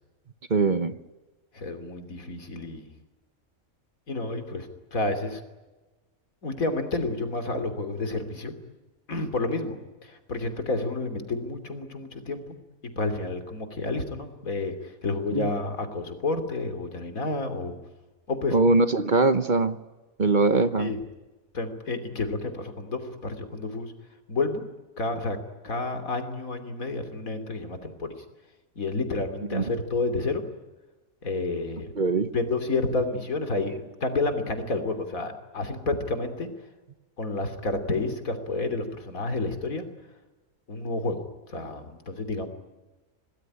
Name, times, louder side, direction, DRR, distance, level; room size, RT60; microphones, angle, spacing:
voice 1, 0.5-0.9 15.3-15.5 18.5-19.8 20.2-20.9 29.5-29.6 32.0-32.3, right 3 dB, 40° right, 12 dB, 1.1 m, -22 dB
voice 2, 1.5-2.9 4.1-5.4 6.4-8.5 9.1-9.8 10.0-12.5 12.8-17.8 18.3-18.6 20.8-21.0 21.5-23.9 24.3-24.6 25.0-25.4 25.6-28.1 28.7-30.4 31.2-31.9 32.3-36.5 37.2-39.9 40.7-42.5, left 3 dB, 85° left, 8 dB, 3.4 m, -30 dB
27.5 x 19.0 x 9.9 m, 1.2 s
omnidirectional pair, 1.4 m